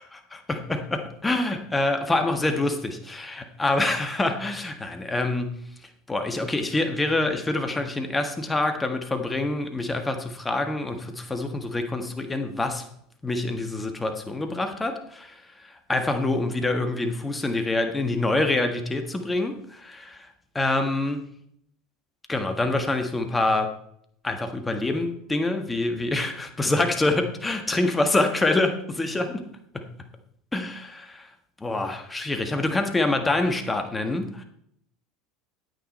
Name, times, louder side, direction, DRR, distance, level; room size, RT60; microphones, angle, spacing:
voice 1, 0.3-5.7 6.1-12.9 13.2-20.3 20.5-21.2 22.3-23.7 24.2-29.4 29.7-29.9 30.5-31.3 31.6-34.4, left 2 dB, 15° left, 6 dB, 1.5 m, -26 dB
9.5 x 8.7 x 4.2 m, 0.71 s
hypercardioid pair, 80°, 0 cm